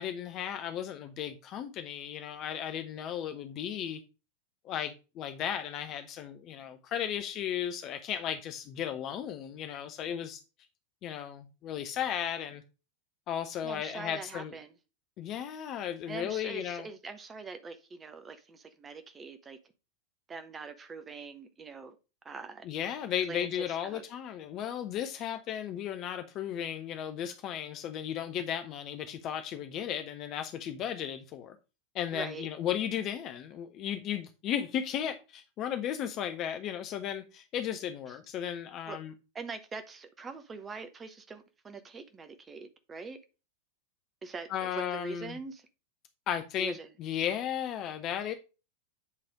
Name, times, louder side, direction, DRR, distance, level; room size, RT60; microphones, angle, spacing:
voice 1, 0.0-4.0 4.6-10.4 11.0-12.6 13.3-14.5 15.2-16.8 22.6-31.6 31.9-39.1 44.5-45.4 46.3-46.7 47.0-48.3, left 9 dB, 35° left, 0.6 m, -35 dB
voice 2, 13.6-14.7 16.1-19.6 20.3-22.0 22.2-22.7 23.3-24.0 32.1-32.5 38.9-39.0 39.3-43.2 44.2-45.7 46.6-46.9, right 4 dB, 20° right, 0.7 m, -43 dB
8.2 x 3.3 x 5.1 m
figure-of-eight pair, 90°, 0 cm